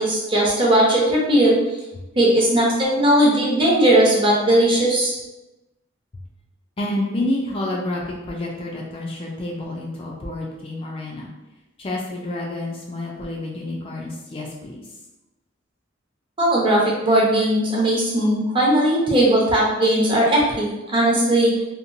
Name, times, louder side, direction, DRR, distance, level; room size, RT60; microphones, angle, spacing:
voice 1, 0.0-1.6 2.2-5.1 16.4-21.5, right 1 dB, 25° right, -4 dB, 0.6 m, -18 dB
voice 2, 6.8-11.3 11.8-14.9, left 1 dB, 30° left, -2 dB, 0.3 m, -29 dB
2.8 x 2.1 x 2.6 m, 1.0 s
head